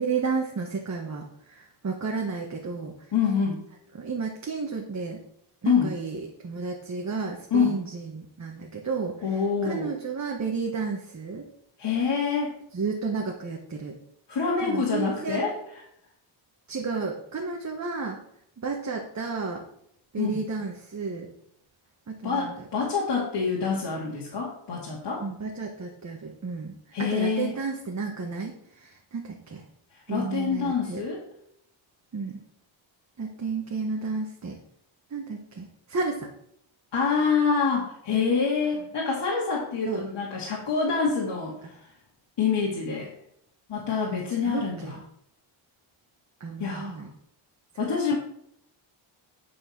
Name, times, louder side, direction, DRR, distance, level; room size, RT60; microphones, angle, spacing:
voice 1, 0.0-2.9 3.9-5.2 5.6-9.1 9.6-11.4 12.7-14.0 14.6-15.4 16.7-18.2 18.6-19.6 20.1-21.3 22.1-22.5 25.2-29.6 30.1-31.0 32.1-32.4 33.2-34.6 35.1-36.3 39.8-40.0 44.1-45.0 46.4-47.1 47.7-47.9, right 4 dB, 35° right, 0 dB, 1.5 m, -32 dB
voice 2, 3.1-3.6 5.6-5.9 7.5-7.8 9.2-9.9 11.8-12.5 14.3-15.6 20.2-20.4 22.2-25.2 26.9-27.5 30.1-31.2 36.9-41.5 42.4-43.1 43.7-45.0 46.6-47.0 47.8-48.2, left 5 dB, 55° left, -4 dB, 2.5 m, -26 dB
11.0 x 4.8 x 6.0 m, 0.70 s
cardioid pair, 115°, 49 cm